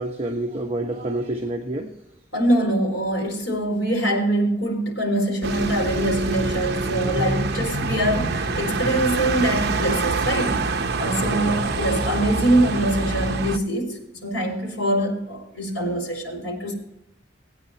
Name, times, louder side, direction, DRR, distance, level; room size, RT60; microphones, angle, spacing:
voice 1, 0.0-2.0 6.9-7.3 11.2-11.5, right 1 dB, 30° right, 1.1 m, -29 dB
voice 2, 2.3-10.7 11.0-16.7, right 1 dB, 70° left, 4.5 m, -24 dB
sound 1, 5.4-13.6, right 3 dB, 55° right, 0.8 m, -25 dB
19.5 x 9.1 x 2.9 m
head